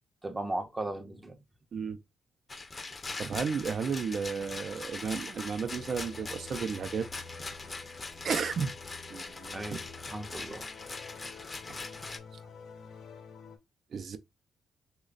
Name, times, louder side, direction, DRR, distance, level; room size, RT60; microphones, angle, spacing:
voice 1, 0.2-1.4 9.5-10.7, right 2 dB, 20° right, 0.7 m, -37 dB
Rattle, 2.5-12.2, left 3 dB, 30° left, 0.6 m, -41 dB
voice 2, 3.2-7.1 7.8-7.9 8.2-8.7 9.1-9.8 13.9-14.2, right 6 dB, 60° right, 0.6 m, -33 dB
sound 1, 5.6-13.6, left 5 dB, 70° left, 0.8 m, -49 dB
3.2 x 2.2 x 3.8 m
cardioid pair, 80°, 0 cm